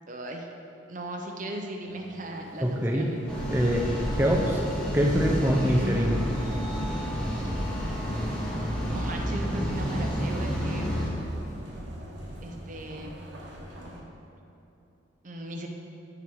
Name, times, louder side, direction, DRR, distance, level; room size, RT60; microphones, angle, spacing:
voice 1, 0.1-0.5 0.9-3.2 8.9-10.9 12.4-13.2 15.2-15.7, right 1 dB, 40° right, 2 dB, 0.8 m, -38 dB
sound 1, 1.8-14.0, right 1 dB, 70° right, 1.4 m, -47 dB
voice 2, 2.6-3.1 3.5-3.9 4.2-4.6 4.9-6.3, equal, 10° right, 0 dB, 0.8 m, -24 dB
sound 2, 3.3-11.1, equal, 5° left, 1.7 m, -30 dB
13.5 x 4.7 x 4.9 m, 2.9 s
head